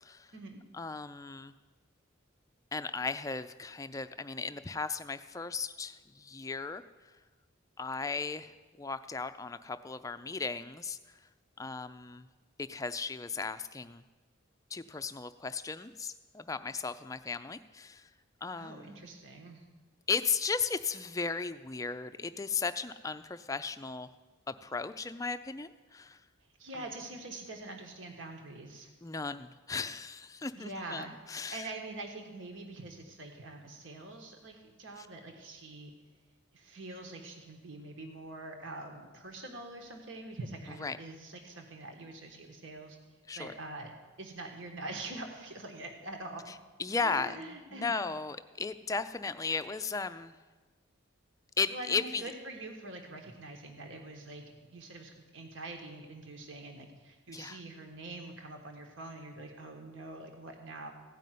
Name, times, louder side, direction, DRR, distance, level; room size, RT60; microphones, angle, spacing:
voice 1, 0.0-0.3 0.7-1.5 2.7-6.8 7.8-11.0 11.6-12.3 12.6-14.0 14.7-18.1 18.4-19.2 20.1-24.1 24.5-26.2 29.0-31.7 35.0-35.1 40.8-41.0 43.3-43.5 46.5-46.6 46.8-50.4 51.6-52.3 57.3-57.6, left 4 dB, 15° left, 10 dB, 0.4 m, -36 dB
voice 2, 18.6-19.6 26.6-28.9 30.4-35.9 36.5-43.0 43.4-43.9 44.2-46.4 47.0-48.0 51.7-60.9, right 2 dB, 70° right, 3 dB, 1.5 m, -44 dB
16.0 x 5.4 x 9.2 m, 1.3 s
head